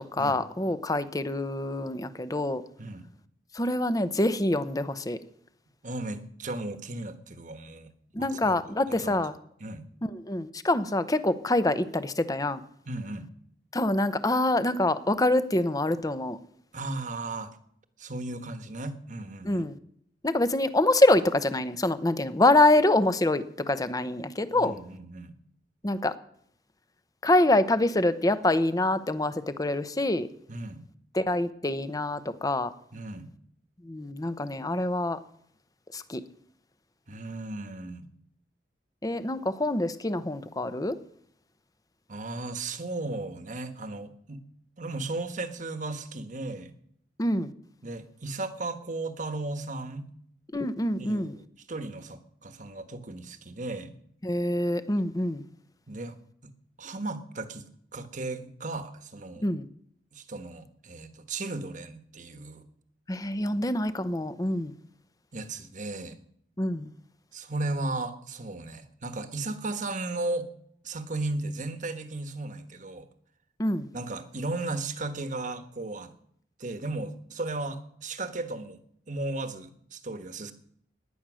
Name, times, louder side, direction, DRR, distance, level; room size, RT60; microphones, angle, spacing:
voice 1, 0.0-2.6 3.5-5.2 8.1-9.3 10.0-12.6 13.7-16.4 19.4-19.8 20.2-24.7 25.8-26.1 27.2-30.3 31.1-32.7 33.8-35.2 35.9-36.2 39.0-41.0 47.2-47.5 50.5-51.3 54.2-55.4 59.4-59.7 63.1-64.7 66.6-66.9 73.6-73.9, left 1 dB, 20° left, 13 dB, 0.8 m, -25 dB
voice 2, 5.8-7.9 8.2-9.3 9.6-9.8 12.9-13.3 16.7-17.6 18.0-19.7 24.5-25.3 30.5-30.8 32.9-33.3 37.1-38.1 42.1-44.4 44.8-46.7 47.8-50.1 51.0-53.9 55.9-56.2 56.4-56.5 56.8-59.5 60.1-62.6 65.3-66.2 67.3-70.5 70.8-73.1 73.9-76.1 76.6-78.8 79.1-80.5, right 2 dB, 45° right, 9 dB, 1.3 m, -35 dB
16.5 x 10.5 x 6.3 m, 0.68 s
head